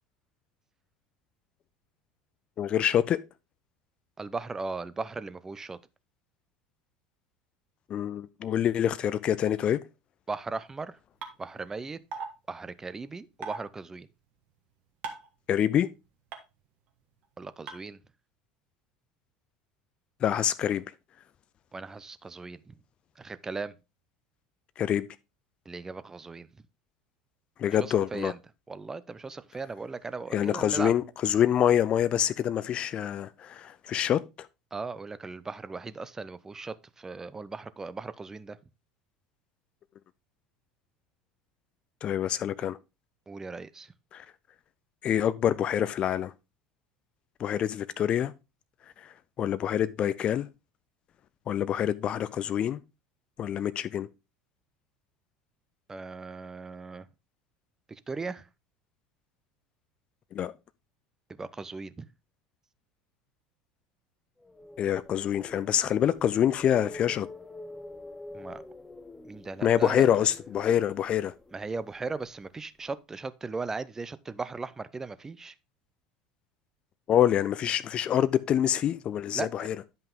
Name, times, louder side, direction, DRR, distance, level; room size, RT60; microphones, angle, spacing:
voice 1, 2.6-3.2 7.9-9.8 15.5-15.9 20.2-20.8 24.8-25.1 27.6-28.3 30.3-34.5 42.0-42.8 44.1-44.2 45.0-46.3 47.4-48.3 49.0-50.5 51.5-52.8 53.4-54.1 60.3-60.5 64.8-67.3 69.6-71.3 77.1-79.8, left 10 dB, 35° left, 0.4 m, -26 dB
voice 2, 4.2-5.8 10.3-11.0 11.4-12.0 12.5-14.1 17.4-18.0 21.7-22.8 23.2-23.7 25.7-26.5 27.8-28.4 28.7-30.9 34.7-38.6 43.3-43.9 55.9-57.1 57.9-58.5 61.4-62.1 68.3-68.6 69.2-70.2 71.5-75.5 79.3-79.7, right 4 dB, 15° right, 0.6 m, -37 dB
sound 1, 11.2-11.3 12.1-12.3 13.4-13.6 15.0-15.3 16.3-16.4 17.7-17.8, right 5 dB, 45° right, 1.6 m, -35 dB
sound 2, 64.4-72.5, left 2 dB, 10° left, 0.9 m, -47 dB
10.5 x 5.5 x 3.6 m
figure-of-eight pair, 70°, 3 cm